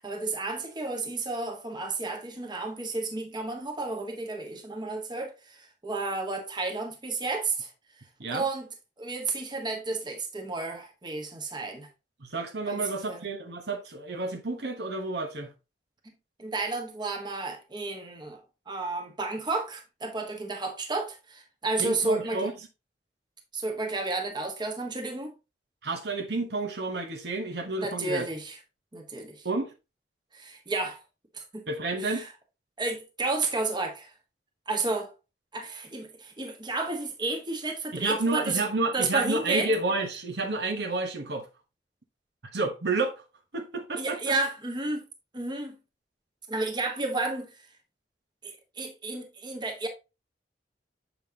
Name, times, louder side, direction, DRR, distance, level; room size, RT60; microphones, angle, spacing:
voice 1, 0.0-7.7 8.3-8.7 9.0-11.9 12.7-13.3 16.4-18.4 18.7-22.5 23.5-25.3 27.8-28.6 28.9-29.5 30.3-31.0 31.3-31.7 32.0-32.3 32.8-34.1 34.7-35.1 35.5-38.7 38.9-39.7 44.0-45.0 45.3-45.8 46.5-47.5 48.4-49.9, right 3 dB, 25° right, 1.3 m, -32 dB
voice 2, 12.2-15.5 21.8-22.5 25.8-28.3 29.4-29.7 31.7-32.3 37.9-41.5 42.5-43.2 43.5-44.3, right 3 dB, 70° right, 1.2 m, -30 dB
7.0 x 5.7 x 2.8 m
head